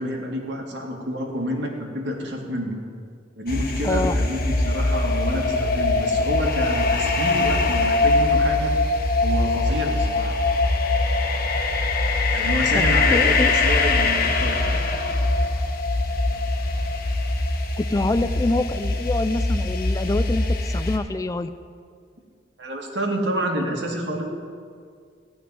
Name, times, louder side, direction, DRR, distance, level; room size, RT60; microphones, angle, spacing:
voice 1, 0.0-2.8 3.4-8.8 9.2-10.4 12.3-14.6 22.6-24.2, equal, 75° right, 0 dB, 2.2 m, -28 dB
sound 1, 3.5-21.0, left 3 dB, 55° left, 1.2 m, -22 dB
voice 2, 3.8-4.2 12.7-13.5 17.8-21.5, left 2 dB, 20° left, 12 dB, 0.4 m, -25 dB
15.0 x 6.0 x 9.8 m, 2.2 s
head